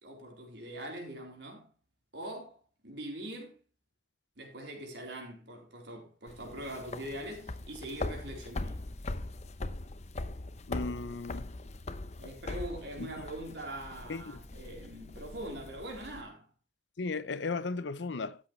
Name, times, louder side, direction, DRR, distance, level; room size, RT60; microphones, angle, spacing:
voice 1, 0.0-1.7 2.1-3.6 4.4-8.8 12.2-16.5, right 1 dB, 75° right, 4.0 m, -42 dB
sound 1, 6.3-16.2, left 2 dB, 40° left, 0.7 m, -41 dB
voice 2, 10.7-11.5 13.0-13.2 14.1-14.4 17.0-18.4, left 3 dB, 85° left, 0.7 m, -36 dB
13.0 x 8.6 x 3.2 m
head